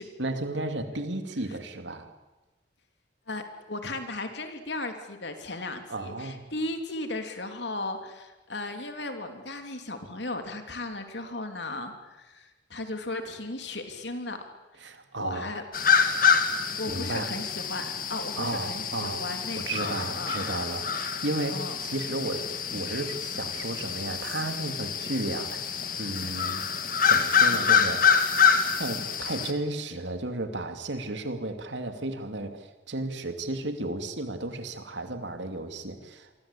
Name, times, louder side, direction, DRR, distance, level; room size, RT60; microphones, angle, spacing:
voice 1, 0.2-2.1 5.9-6.4 14.8-15.5 16.9-17.3 18.4-22.5 22.7-26.6 27.1-28.1 28.8-36.4, right 2 dB, 75° right, 7 dB, 2.6 m, -33 dB
voice 2, 3.3-14.4 15.2-15.6 16.8-20.4 21.5-21.7, left 2 dB, 70° left, 6 dB, 3.3 m, -36 dB
sound 1, 15.7-29.5, left 6 dB, 45° left, 2.2 m, -26 dB
28.0 x 24.0 x 8.6 m, 1.2 s
head